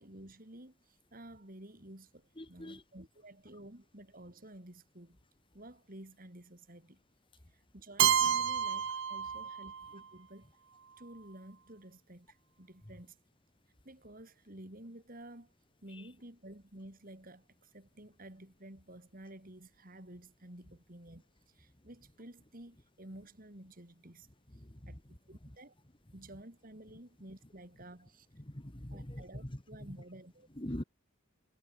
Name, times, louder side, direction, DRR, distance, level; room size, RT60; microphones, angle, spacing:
voice 1, 0.0-5.2 5.5-7.0 7.5-10.5 11.0-13.2 13.8-15.5 15.8-24.3 24.5-25.0 25.3-25.7 26.1-28.3 28.9-30.5, right 1 dB, 40° right, 3.2 m, -52 dB
voice 2, 2.4-2.8 8.8-8.9 24.5-24.9 28.4-29.6 30.6-30.8, left 1 dB, 25° left, 1.8 m, -43 dB
Keyboard (musical), 8.0-9.9, right 8 dB, 60° right, 0.7 m, -29 dB
head